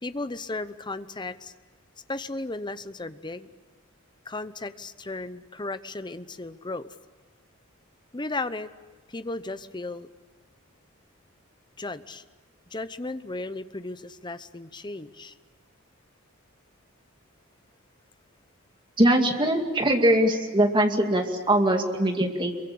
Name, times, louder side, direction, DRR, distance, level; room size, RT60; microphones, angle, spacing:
voice 1, 0.0-1.5 2.1-3.5 4.3-6.9 8.1-8.7 9.1-10.1 11.8-12.2 12.7-15.3, left 2 dB, 20° left, 12 dB, 0.8 m, -35 dB
voice 2, 19.0-22.5, right 1 dB, 25° right, 4 dB, 2.3 m, -22 dB
26.5 x 23.5 x 8.6 m, 1.3 s
head